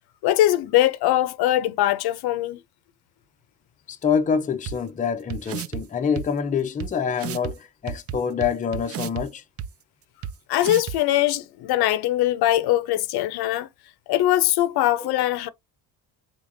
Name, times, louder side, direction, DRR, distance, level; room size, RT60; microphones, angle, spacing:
voice 1, 0.2-2.6 10.5-13.7 14.1-15.5, left 14 dB, 70° left, 0.6 m, -21 dB
voice 2, 3.9-9.4 15.0-15.1, left 6 dB, 20° left, 0.5 m, -26 dB
sound 1, 4.7-4.8 5.3-5.8 6.2-6.3 6.8-6.9 7.2-7.5 7.9-9.2 9.6-9.7 10.2-10.3 10.6-11.0, right 9 dB, 40° right, 0.4 m, -31 dB
3.6 x 3.4 x 2.6 m
cardioid pair, 120°, 40 cm